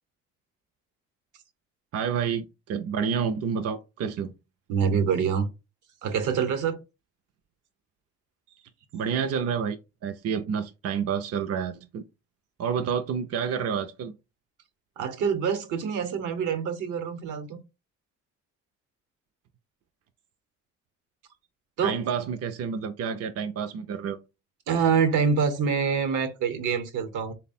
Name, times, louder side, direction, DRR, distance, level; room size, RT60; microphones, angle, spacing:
voice 1, 1.9-4.3 8.9-12.0 12.6-14.1 21.8-24.2, right 7 dB, 55° right, 0.5 m, -29 dB
voice 2, 4.7-5.5 6.0-6.8 15.0-17.6 21.8-22.0 24.7-27.3, right 6 dB, 80° right, 0.9 m, -25 dB
3.4 x 2.1 x 4.1 m
cardioid pair, 90°, 30 cm